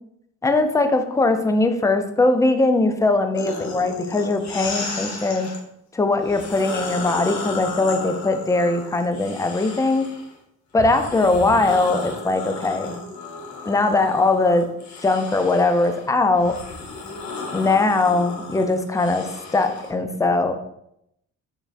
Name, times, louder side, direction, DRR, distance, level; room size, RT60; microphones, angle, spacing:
voice 1, 0.4-5.5 5.9-10.1 10.7-13.0 13.7-14.7 15.0-16.6 17.5-19.3 19.5-20.5, left 2 dB, 10° left, 7 dB, 0.4 m, -20 dB
sound 1, 3.3-5.6 6.2-10.3 10.8-19.9, left 3 dB, 65° left, 1.0 m, -34 dB
4.2 x 3.4 x 2.5 m, 0.77 s
cardioid pair, 90°, 30 cm